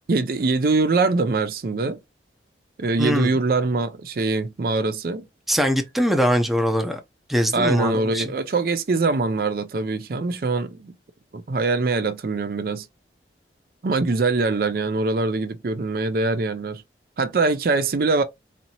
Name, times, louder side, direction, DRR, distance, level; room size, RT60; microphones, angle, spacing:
voice 1, 0.1-2.0 2.8-5.3 7.5-10.9 11.3-12.9 13.8-16.8 17.2-18.2, right 3 dB, 55° right, 0.4 m, -23 dB
voice 2, 5.5-7.0 7.3-8.3, equal, ahead, 0.6 m, -22 dB
4.3 x 2.7 x 2.8 m
head